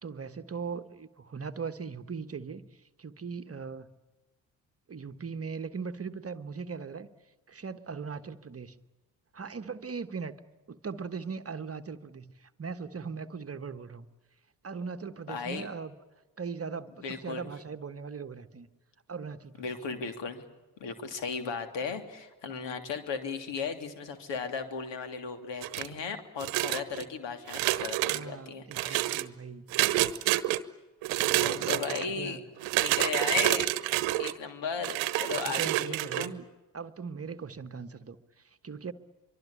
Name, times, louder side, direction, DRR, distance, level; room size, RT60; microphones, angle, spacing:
voice 1, 0.0-3.9 4.9-7.1 7.5-8.8 9.3-10.3 10.7-14.1 14.6-15.9 16.4-18.7 19.1-19.6 28.1-29.7 31.2-32.4 35.3-36.4 36.7-38.9, right 5 dB, 30° right, 9 dB, 1.3 m, -39 dB
voice 2, 15.3-15.7 17.0-17.4 19.6-20.4 20.8-29.1 31.4-32.4 32.8-33.7 34.2-36.3, left 5 dB, 60° left, 7 dB, 3.3 m, -36 dB
sound 1, 25.6-26.0 26.4-27.0 27.5-28.2 28.7-29.2 29.7-30.6 31.0-32.0 32.6-34.3 34.8-36.3, right 17 dB, 65° right, 1.1 m, -28 dB
24.0 x 24.0 x 8.5 m, 1.1 s
figure-of-eight pair, 45°, 50 cm